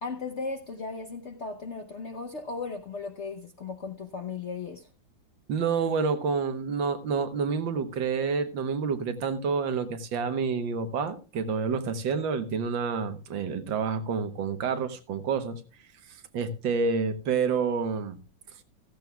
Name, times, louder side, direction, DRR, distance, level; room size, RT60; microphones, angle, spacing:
voice 1, 0.0-4.9, left 4 dB, 55° left, 0.8 m, -36 dB
voice 2, 5.5-15.6 16.3-18.2, right 5 dB, 75° right, 1.8 m, -28 dB
15.0 x 14.0 x 2.3 m
omnidirectional pair, 2.1 m